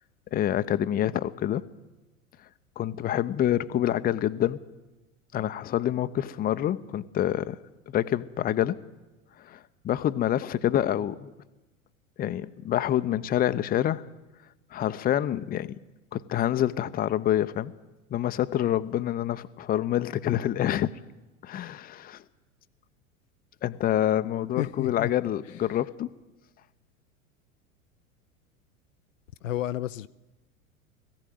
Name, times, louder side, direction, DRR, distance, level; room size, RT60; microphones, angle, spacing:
voice 1, 0.3-1.6 2.8-4.6 5.3-7.6 7.9-8.8 9.4-11.3 12.2-14.0 14.7-15.8 16.1-17.7 18.1-20.9 21.4-22.2 23.6-26.1, left 11 dB, 20° left, 0.7 m, -27 dB
voice 2, 24.6-25.1 29.4-30.1, left 13 dB, 65° left, 0.6 m, -31 dB
20.0 x 15.5 x 9.4 m
figure-of-eight pair, 85°, 42 cm